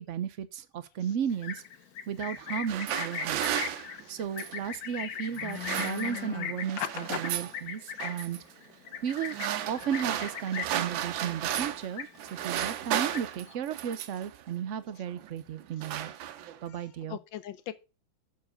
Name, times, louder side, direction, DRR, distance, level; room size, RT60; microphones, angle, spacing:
voice 1, 0.0-1.6 2.1-3.5 4.1-8.4 9.0-9.4 9.7-12.1 12.4-16.1 16.6-17.2, right 8 dB, 65° right, 0.7 m, -34 dB
Livestock farm animals working animals, 1.3-10.9 11.3-11.6 11.8-12.5 12.8-13.5, left 7 dB, 60° left, 1.3 m, -39 dB
sound 1, 2.5-4.7 5.4-6.4 6.6-7.6 8.0-8.4 9.1-11.9 12.2-14.3 15.1-15.3 15.6-16.7, right 11 dB, 85° right, 1.5 m, -34 dB
voice 2, 6.8-7.2 12.9-13.0 16.7-17.7, left 10 dB, 75° left, 1.6 m, -38 dB
7.2 x 6.2 x 6.7 m
omnidirectional pair, 2.1 m